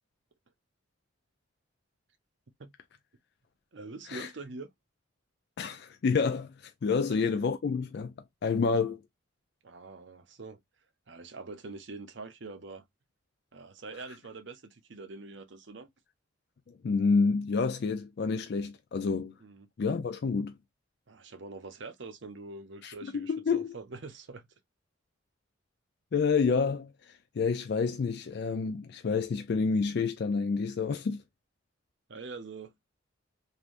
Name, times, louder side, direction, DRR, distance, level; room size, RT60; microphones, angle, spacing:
voice 1, 3.7-4.7 7.1-7.2 9.6-10.6 11.1-12.8 13.5-15.9 19.4-19.7 21.1-24.5 32.1-32.7, right 3 dB, 65° right, 0.7 m, -44 dB
voice 2, 5.6-8.1 8.4-9.0 16.7-19.4 19.8-20.6 22.8-23.7 26.1-31.2, left 5 dB, 55° left, 0.4 m, -29 dB
3.3 x 2.6 x 2.4 m
head